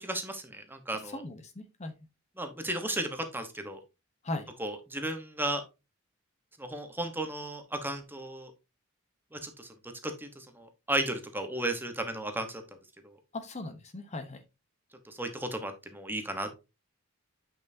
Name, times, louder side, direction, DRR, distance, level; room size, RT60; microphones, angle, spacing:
voice 1, 0.0-1.2 2.4-3.8 4.6-5.6 6.6-8.5 9.3-12.6 13.0-13.1 15.0-16.5, right 1 dB, 10° right, 6 dB, 1.1 m, -34 dB
voice 2, 1.1-1.9 4.2-4.4 13.3-14.4, left 2 dB, 30° left, 7 dB, 0.9 m, -38 dB
8.8 x 5.4 x 2.7 m, 0.26 s
head